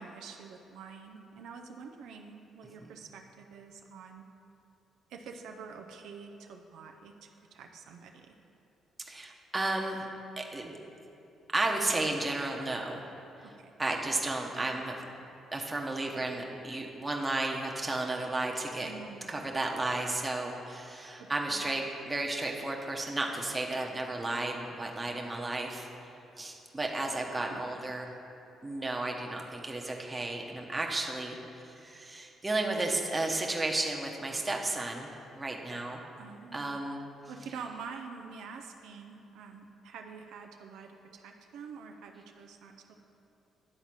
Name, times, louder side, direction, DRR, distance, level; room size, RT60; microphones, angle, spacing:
voice 1, 0.0-4.3 5.1-8.3 13.4-13.7 18.8-19.4 21.2-21.6 27.4-27.6 36.2-36.8 37.3-42.9, right 5 dB, 85° right, 3 dB, 0.5 m, -47 dB
voice 2, 9.1-10.0 10.4-10.7 11.5-13.0 13.8-15.0 15.5-18.9 19.3-25.9 26.4-28.1 28.6-36.0 36.5-37.0, right 2 dB, 20° right, 0 dB, 1.0 m, -33 dB
10.0 x 4.1 x 6.0 m, 2.8 s
cardioid pair, 90°, 0 cm